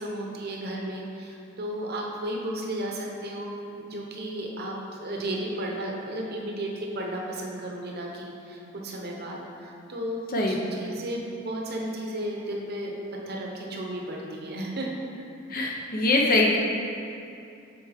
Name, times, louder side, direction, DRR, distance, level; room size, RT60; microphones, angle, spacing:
voice 1, 0.0-12.9 13.3-15.2, right 1 dB, 50° right, -1 dB, 0.8 m, -34 dB
voice 2, 15.5-16.6, left 2 dB, 45° left, -1 dB, 0.7 m, -23 dB
7.0 x 4.7 x 3.4 m, 2.6 s
head